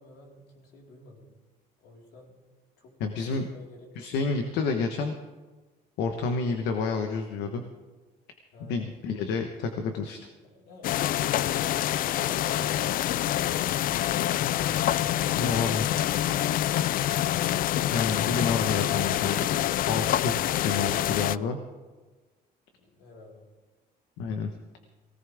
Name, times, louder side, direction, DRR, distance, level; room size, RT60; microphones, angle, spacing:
voice 1, 0.0-1.3 1.8-2.4 2.8-4.1 8.5-9.0 10.4-11.7 22.8-23.4, left 2 dB, 70° left, -2 dB, 4.7 m, -50 dB
voice 2, 3.0-3.5 3.9-5.1 6.0-7.6 8.6-10.2 15.3-16.0 17.9-19.6 19.9-20.3 20.6-21.6 24.2-24.5, left 4 dB, 90° left, 5 dB, 1.3 m, -29 dB
sound 1, 10.8-21.4, left 12 dB, 55° left, 0.4 m, -26 dB
19.5 x 18.0 x 3.6 m, 1.3 s
cardioid pair, 110°, 17 cm